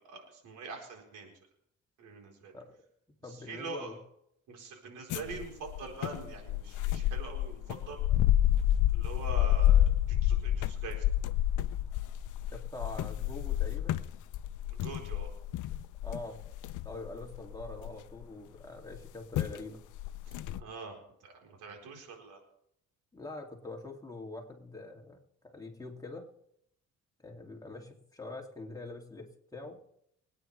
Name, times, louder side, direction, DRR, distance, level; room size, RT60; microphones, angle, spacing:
voice 1, 0.1-1.3 2.0-2.5 3.5-3.9 4.5-7.6 7.9-8.0 8.9-11.0 14.7-15.3 20.6-20.9 21.2-22.4, right 4 dB, 90° right, 1 dB, 4.4 m, -44 dB
voice 2, 3.2-4.0 12.5-14.1 16.0-16.4 16.8-19.8 23.1-25.2 25.5-26.3 27.2-29.8, left 2 dB, 10° left, 1 dB, 2.7 m, -44 dB
sound 1, 5.1-18.2 18.9-19.1 19.3-19.6 20.0-20.6, left 12 dB, 80° left, 0.7 m, -29 dB
25.0 x 9.5 x 3.4 m, 0.74 s
cardioid pair, 90°, 30 cm